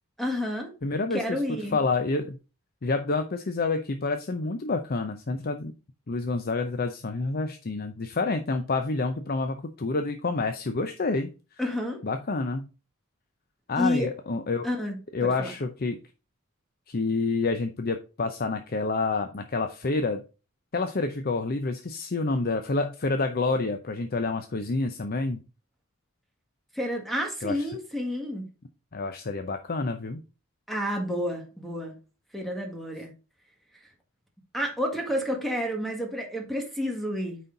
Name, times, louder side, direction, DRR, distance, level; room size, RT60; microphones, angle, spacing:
voice 1, 0.2-0.7 1.1-1.8 11.6-12.0 13.7-14.1 14.6-15.5 26.7-28.5 30.7-32.0 32.3-33.1 34.5-37.4, equal, ahead, 1.7 m, -30 dB
voice 2, 0.8-1.4 1.7-2.4 2.8-5.7 6.1-11.3 12.0-12.7 13.7-14.7 15.1-16.0 16.9-20.2 20.7-25.4 27.4-27.6 28.9-30.2, left 3 dB, 45° left, 0.7 m, -28 dB
9.2 x 4.3 x 3.9 m
head